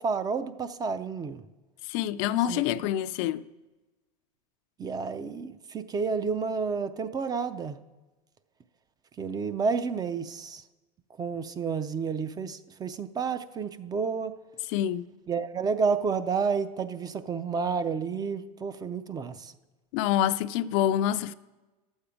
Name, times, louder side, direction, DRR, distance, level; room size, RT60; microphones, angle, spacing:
voice 1, 0.0-1.4 2.5-2.6 4.8-7.8 9.2-10.6 11.2-14.3 15.3-19.5, right 5 dB, 20° right, 0.4 m, -30 dB
voice 2, 1.8-3.5 14.7-15.1 19.9-21.3, left 11 dB, 55° left, 0.4 m, -26 dB
11.5 x 7.2 x 5.0 m
hypercardioid pair, 115°, 20 cm